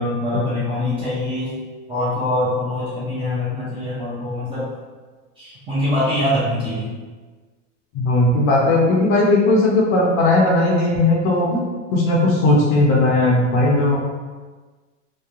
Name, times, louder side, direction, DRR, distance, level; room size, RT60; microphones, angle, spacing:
voice 1, 0.0-1.6 1.9-4.8 5.4-6.9, left 1 dB, 15° right, -10 dB, 0.4 m, -24 dB
voice 2, 7.9-11.6 11.9-14.0, left 2 dB, 35° left, -2 dB, 0.5 m, -17 dB
2.9 x 2.1 x 2.4 m, 1.4 s
supercardioid pair, 145°, 37 cm